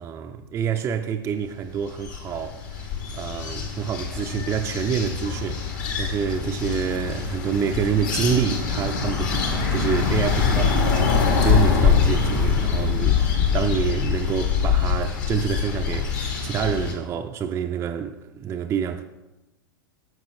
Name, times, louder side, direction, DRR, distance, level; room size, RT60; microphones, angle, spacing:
voice 1, 0.0-19.0, right 8 dB, 20° right, 0.4 m, -27 dB
sound 1, 1.7-16.9, left 6 dB, 50° left, 1.6 m, -24 dB
13.5 x 7.4 x 2.4 m
figure-of-eight pair, 95°, 12 cm